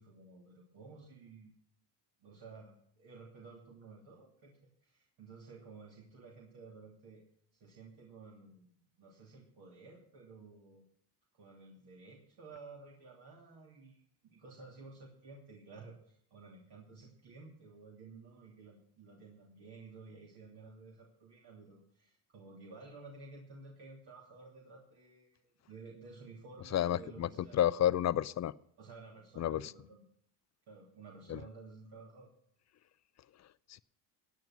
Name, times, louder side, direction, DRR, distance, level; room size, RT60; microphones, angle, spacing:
voice 1, 0.0-1.5 2.2-7.2 7.5-10.8 11.3-27.7 28.8-30.0 30.7-32.3, right 4 dB, 55° right, -2 dB, 3.1 m, -53 dB
voice 2, 26.7-28.5 29.4-29.7 31.3-31.4 33.7-33.8, left 11 dB, 35° left, 17 dB, 0.5 m, -31 dB
17.0 x 9.1 x 6.1 m, 0.65 s
supercardioid pair, 95°, 46 cm